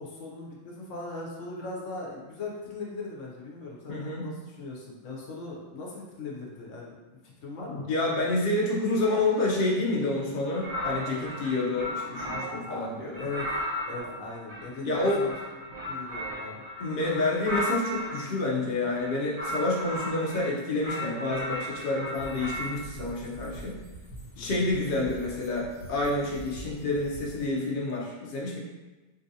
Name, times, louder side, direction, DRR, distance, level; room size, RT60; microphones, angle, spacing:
voice 1, 0.0-6.9 7.4-7.9 12.5-13.6 13.9-14.9 15.2-15.3 15.9-16.6 24.4-24.6, left 3 dB, 70° left, -3 dB, 1.0 m, -39 dB
voice 2, 3.9-4.3 7.7-13.3 14.8-15.2 16.8-23.8 24.4-28.6, left 2 dB, 50° left, -4 dB, 0.7 m, -28 dB
sound 1, 10.6-12.7 13.1-18.3 18.9-20.5 20.8-22.8, left 1 dB, 80° right, 1.5 m, -35 dB
sound 2, 22.1-27.5, right 1 dB, 15° right, 0.8 m, -45 dB
3.8 x 2.5 x 2.7 m, 1.2 s
omnidirectional pair, 1.4 m